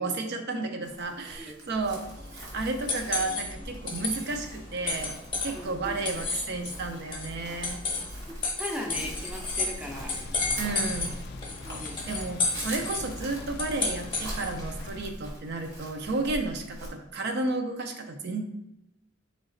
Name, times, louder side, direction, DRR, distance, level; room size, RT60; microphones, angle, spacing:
voice 1, 0.0-2.0 2.3-5.2 5.4-7.8 10.6-11.2 12.1-18.4, right 3 dB, 55° right, 5 dB, 0.5 m, -32 dB
Chirp tweet, 0.8-16.9, right 1 dB, 75° right, 1.6 m, -43 dB
sound 1, 1.8-14.7, left 3 dB, 25° left, 0.9 m, -33 dB
voice 2, 5.5-6.0 8.4-10.2 11.6-12.0, left 1 dB, 5° right, 1 dB, 0.5 m, -38 dB
sound 2, 9.8-15.1, left 4 dB, 55° left, 0.3 m, -45 dB
3.9 x 3.2 x 3.8 m, 0.89 s
head